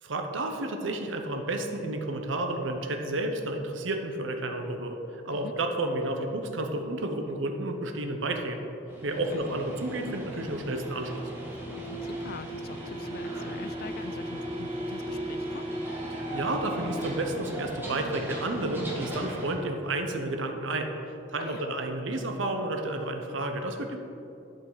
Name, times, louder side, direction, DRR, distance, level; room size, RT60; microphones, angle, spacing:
voice 1, 0.0-8.7 9.0-11.2 16.1-24.0, right 2 dB, 75° right, 5 dB, 0.9 m, -31 dB
sound 1, 8.9-19.5, right 1 dB, 10° right, 1.4 m, -37 dB
sound 2, 11.5-17.4, right 1 dB, 25° right, 0.3 m, -40 dB
voice 2, 11.7-15.7 21.4-21.7, left 5 dB, 50° left, 12 dB, 0.3 m, -44 dB
11.5 x 5.6 x 4.0 m, 2.8 s
head